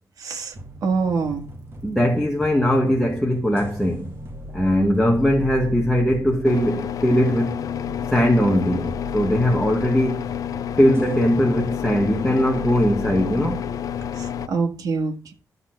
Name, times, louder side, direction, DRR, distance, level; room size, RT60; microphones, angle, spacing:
voice 1, 0.2-0.5 0.8-1.5 14.2-15.3, right 4 dB, 65° right, 1.9 m, -25 dB
sound 1, 0.5-14.5, left 1 dB, 40° right, 2.4 m, -37 dB
voice 2, 1.8-4.1 4.5-7.6 8.1-10.2 10.8-13.6, equal, 5° left, 1.3 m, -20 dB
sound 2, 6.4-14.5, left 10 dB, 65° left, 0.4 m, -30 dB
12.0 x 4.1 x 7.6 m
wide cardioid pair, 145°, 7 cm